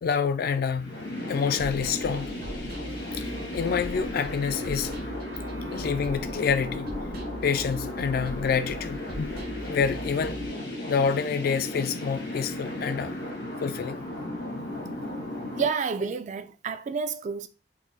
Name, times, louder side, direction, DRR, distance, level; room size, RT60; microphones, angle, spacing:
voice 1, 0.0-1.0 1.3-2.3 3.2-4.9 5.7-6.9 7.4-9.3 9.7-10.4 10.9-13.2 13.6-14.0, left 6 dB, 55° left, 0.3 m, -27 dB
sound 1, 0.7-15.7, left 1 dB, 80° left, 1.7 m, -35 dB
sound 2, 1.6-10.5, right 1 dB, 55° right, 0.7 m, -40 dB
Bowed string instrument, 2.9-7.3, right 2 dB, 80° right, 1.0 m, -49 dB
voice 2, 15.6-17.5, right 5 dB, 40° right, 0.3 m, -29 dB
4.6 x 2.1 x 2.7 m
head